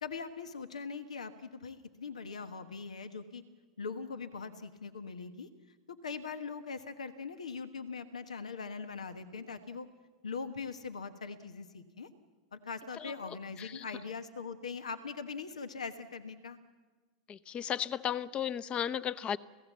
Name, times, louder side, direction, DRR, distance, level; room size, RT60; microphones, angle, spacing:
voice 1, 0.0-3.4 3.8-5.5 5.9-9.9 10.2-12.1 12.5-16.6, left 5 dB, 85° left, 10 dB, 1.2 m, -41 dB
voice 2, 13.0-13.9 17.3-19.4, left 9 dB, 30° left, 16 dB, 0.8 m, -35 dB
29.0 x 16.5 x 7.4 m, 1.3 s
hypercardioid pair, 100°, 3 cm